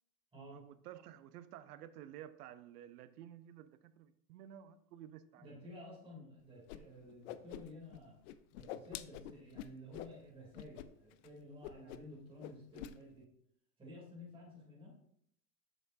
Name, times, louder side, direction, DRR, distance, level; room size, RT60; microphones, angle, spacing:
voice 1, 0.4-5.5, right 11 dB, 80° right, 0.7 m, -53 dB
voice 2, 5.4-8.2 8.5-13.3 13.8-14.9, left 1 dB, 10° right, 2.8 m, -53 dB
Whoosh swoosh swish, 6.7-6.8 7.1-8.0 8.2-10.1 10.5-10.9 11.1-11.3 11.6-12.1 12.4-12.9, left 12 dB, 55° left, 0.5 m, -46 dB
6.9 x 6.1 x 2.6 m
supercardioid pair, 145°, 46 cm